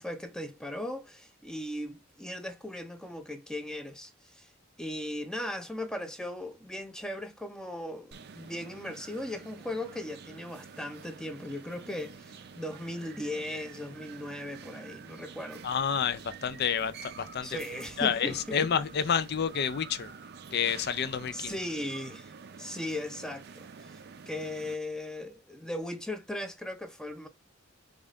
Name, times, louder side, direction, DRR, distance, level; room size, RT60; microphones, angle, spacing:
voice 1, 0.0-4.5 4.8-15.7 17.4-18.8 21.3-22.3 22.6-24.0 24.3-27.3, left 1 dB, 5° left, 0.6 m, -38 dB
sound 1, 8.1-24.7, right 5 dB, 50° right, 0.4 m, -48 dB
voice 2, 15.6-17.6 18.0-20.1 20.5-21.6, left 7 dB, 50° left, 0.4 m, -29 dB
5.3 x 2.4 x 3.7 m
head